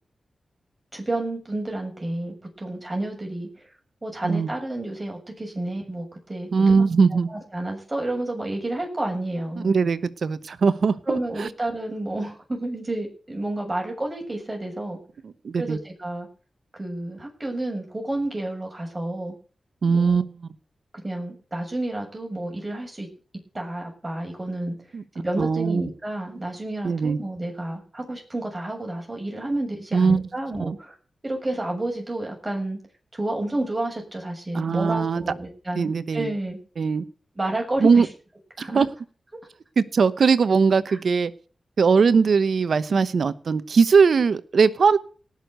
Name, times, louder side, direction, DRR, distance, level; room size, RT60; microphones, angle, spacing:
voice 1, 0.9-3.7 4.0-6.8 7.3-9.8 11.1-15.0 15.5-16.3 16.8-19.3 19.9-20.2 20.9-23.1 23.5-24.8 25.2-31.0 31.2-32.8 33.1-36.6 37.4-38.1 38.6-38.9 40.9-41.0, right 1 dB, 25° right, 1 dB, 7.2 m, -30 dB
voice 2, 6.5-7.3 9.6-11.5 15.2-15.8 19.8-20.3 24.9-25.0 25.4-25.9 26.8-27.2 29.9-30.2 30.7-30.8 34.5-35.2 35.8-36.3 36.8-37.0 37.8-38.1 38.6-38.9 39.8-41.3 41.8-45.0, right 5 dB, 75° right, 15 dB, 1.0 m, -20 dB
18.0 x 6.6 x 8.1 m, 0.40 s
cardioid pair, 50°, 0 cm